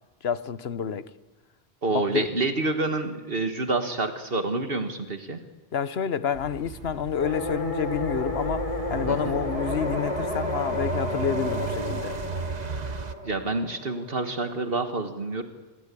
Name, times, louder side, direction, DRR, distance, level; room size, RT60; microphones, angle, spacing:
voice 1, 0.2-1.1 1.9-2.3 5.7-12.2, left 7 dB, 75° left, 1.2 m, -29 dB
voice 2, 1.8-5.4 9.1-9.4 13.2-15.4, right 3 dB, 65° right, 1.8 m, -28 dB
sound 1, 6.3-13.1, right 5 dB, 45° right, 1.2 m, -35 dB
sound 2, 7.2-14.2, left 1 dB, 30° left, 4.1 m, -32 dB
27.0 x 21.0 x 8.5 m
omnidirectional pair, 1.0 m